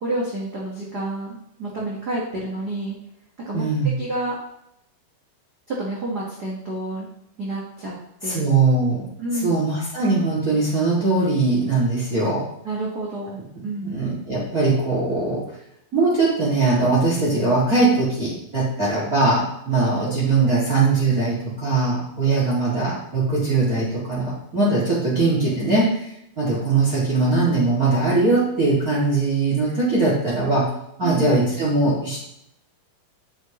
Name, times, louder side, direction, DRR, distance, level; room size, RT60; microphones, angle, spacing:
voice 1, 0.0-3.0 3.5-3.6 4.0-4.4 5.7-7.1 7.4-7.9 8.2-8.4 9.2-9.6 12.6-14.0 20.0-20.1 20.5-20.6 21.1-21.2 31.0-31.3, right 2 dB, 90° right, -4 dB, 0.8 m, -29 dB
voice 2, 3.5-3.9 8.2-9.1 9.4-12.4 13.8-15.4 15.9-26.1 26.4-30.7 31.0-32.2, right 3 dB, 25° right, -7 dB, 2.3 m, -21 dB
8.9 x 8.1 x 3.1 m, 0.78 s
omnidirectional pair, 4.4 m